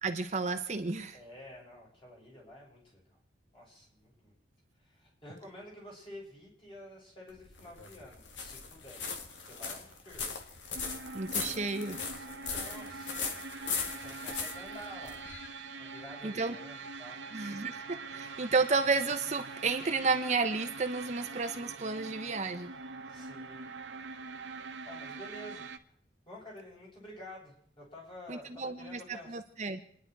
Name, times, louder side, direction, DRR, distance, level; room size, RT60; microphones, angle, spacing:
voice 1, 0.0-1.2 11.1-11.9 16.2-16.5 17.3-22.7 28.3-29.0 29.3-29.8, right 4 dB, 40° right, 7 dB, 0.9 m, -32 dB
voice 2, 1.1-3.2 3.5-4.3 4.7-9.0 9.3-10.4 11.3-13.2 13.5-15.2 15.8-17.6 18.1-18.3 23.0-23.7 24.1-24.3 24.8-25.9 26.2-29.4, left 1 dB, 30° left, -4 dB, 7.0 m, -50 dB
sound 1, 7.3-15.5, left 5 dB, 90° left, 2.0 m, -39 dB
sound 2, 10.7-25.8, right 4 dB, 85° right, 1.1 m, -44 dB
28.5 x 10.5 x 4.7 m, 0.62 s
head